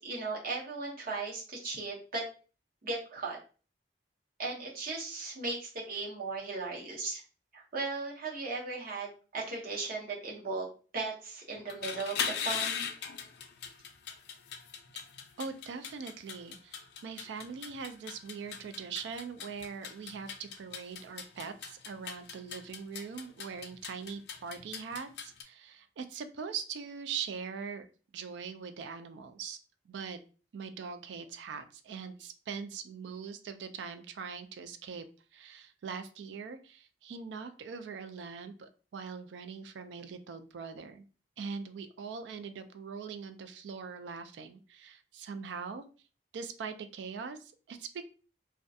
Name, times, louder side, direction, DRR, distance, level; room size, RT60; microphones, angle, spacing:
voice 1, 0.0-2.2 2.8-3.4 4.4-7.2 7.5-12.9, right 3 dB, 55° right, -2 dB, 0.8 m, -37 dB
sound 1, 11.6-25.4, left 7 dB, 65° left, 0.4 m, -40 dB
voice 2, 15.4-27.9 28.1-29.6 29.9-30.2 30.5-35.1 35.3-41.0 41.4-45.8 46.3-48.0, right 6 dB, 85° right, 10 dB, 0.3 m, -42 dB
2.3 x 2.2 x 2.6 m, 0.37 s
head